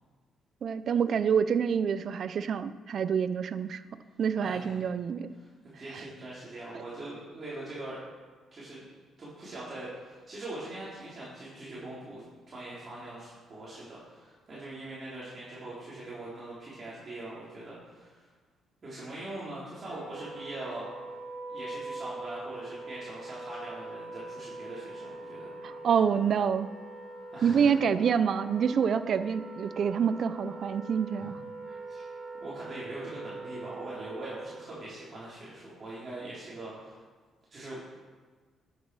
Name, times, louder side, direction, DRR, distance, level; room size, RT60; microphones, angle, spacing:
voice 1, 0.6-3.8 4.2-5.3 5.9-6.0 25.6-26.7 27.4-31.4, right 7 dB, 60° right, 13 dB, 0.5 m, -27 dB
voice 2, 4.4-4.8 5.4-5.5 5.7-8.0 8.5-8.8 9.2-18.3 18.8-20.9 21.5-25.9 27.3-27.7 31.2-31.3 31.7-32.0 32.4-37.0 37.5-37.8, right 2 dB, 40° right, -8 dB, 3.6 m, -42 dB
Wind instrument woodwind instrument, 19.9-34.8, right 2 dB, 20° right, 3.8 m, -43 dB
11.5 x 8.2 x 4.8 m, 1.4 s
cardioid pair, 75°, 0 cm